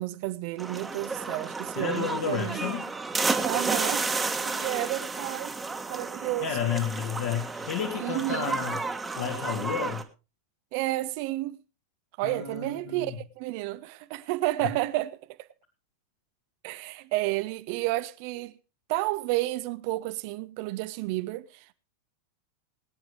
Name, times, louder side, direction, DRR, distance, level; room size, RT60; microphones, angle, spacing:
voice 1, 0.0-2.6 3.4-4.1 4.4-5.5 5.9-6.5 8.0-8.6 10.7-11.6 12.2-15.1 15.4-15.5 16.6-18.5 18.9-21.7, right 18 dB, 45° right, 0.8 m, -31 dB
sound 1, 0.6-10.0, right 4 dB, 10° right, 1.5 m, -32 dB
voice 2, 1.8-2.8 6.4-8.8 9.1-10.0 12.2-13.2 14.6-14.7, left 8 dB, 50° left, 2.5 m, -31 dB
22.0 x 9.6 x 3.4 m
figure-of-eight pair, 90°, 0 cm